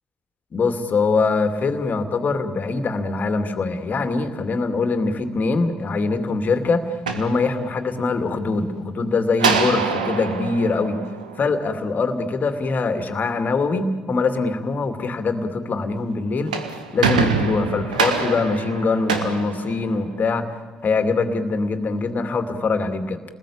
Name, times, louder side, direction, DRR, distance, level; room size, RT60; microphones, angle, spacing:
voice 1, 0.5-11.0 11.4-16.5 16.9-20.5 20.8-23.2, left 3 dB, 45° left, 7 dB, 2.6 m, -23 dB
sound 1, 6.9-8.1 9.4-11.9 16.3-20.3, right 5 dB, 90° right, 1.5 m, -25 dB
30.0 x 20.0 x 8.8 m, 1.3 s
hypercardioid pair, 45°, 4 cm